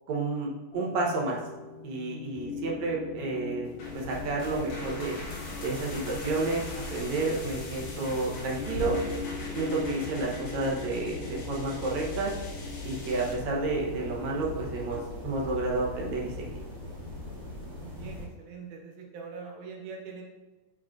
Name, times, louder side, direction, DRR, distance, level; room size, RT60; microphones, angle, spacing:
voice 1, 0.1-1.4 1.8-3.7 3.9-5.2 5.6-9.0 9.6-12.3 12.8-16.6, right 3 dB, 65° right, -2 dB, 1.9 m, -31 dB
sound 1, 0.7-15.0, left 4 dB, 80° left, 2.7 m, -42 dB
sound 2, 3.6-13.3, left 2 dB, 60° left, 2.4 m, -44 dB
sound 3, 3.8-18.2, left 2 dB, 35° right, 0.9 m, -40 dB
voice 2, 17.8-20.2, right 5 dB, 85° right, 0 dB, 3.0 m, -43 dB
8.4 x 5.8 x 2.5 m, 1.2 s
omnidirectional pair, 4.1 m